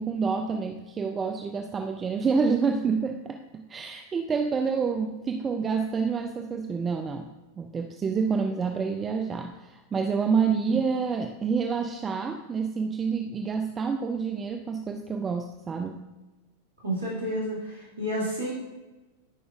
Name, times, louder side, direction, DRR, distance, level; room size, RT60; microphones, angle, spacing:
voice 1, 0.0-7.3 7.6-16.0, right 5 dB, 20° right, 5 dB, 0.4 m, -28 dB
voice 2, 16.8-18.5, equal, 75° right, -7 dB, 2.3 m, -30 dB
9.8 x 4.8 x 2.5 m, 1.1 s
figure-of-eight pair, 90°, 0 cm